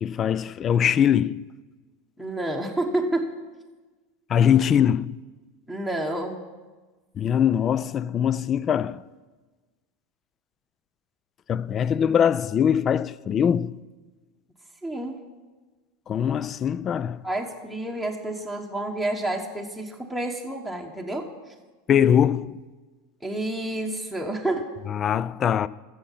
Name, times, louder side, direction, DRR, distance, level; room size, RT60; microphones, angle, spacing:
voice 1, 0.0-1.4 4.3-5.2 7.2-9.0 11.5-13.8 16.1-17.2 21.9-22.6 24.9-25.7, left 9 dB, 35° left, 0.3 m, -22 dB
voice 2, 2.2-3.3 5.7-6.4 14.8-15.2 17.2-21.5 23.2-24.7, right 1 dB, 5° left, 1.2 m, -29 dB
14.0 x 7.2 x 5.7 m
hypercardioid pair, 105°, 0 cm